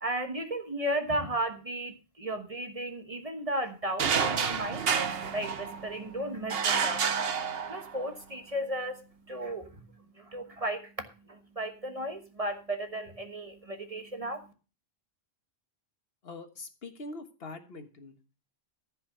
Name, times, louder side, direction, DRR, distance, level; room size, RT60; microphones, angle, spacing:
voice 1, 0.0-9.9 10.2-10.9 11.3-14.5, right 1 dB, 35° right, 6 dB, 1.3 m, -35 dB
sound 1, 4.0-6.0 6.5-8.1, right 6 dB, 70° right, 1.1 m, -29 dB
voice 2, 16.2-18.4, left 2 dB, 75° left, 8 dB, 1.6 m, -44 dB
14.5 x 5.5 x 6.6 m, 0.34 s
omnidirectional pair, 1.0 m